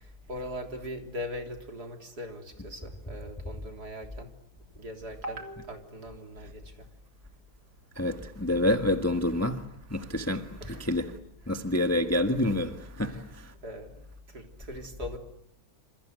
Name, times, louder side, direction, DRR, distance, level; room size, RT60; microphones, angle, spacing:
voice 1, 0.0-4.3 4.7-6.9 10.6-11.0 11.4-11.5 13.0-13.4 13.6-15.2, equal, 50° right, 4.1 m, -40 dB
voice 2, 7.9-11.2 11.5-13.5, left 1 dB, 10° left, 1.3 m, -28 dB
28.0 x 28.0 x 7.8 m
omnidirectional pair, 2.3 m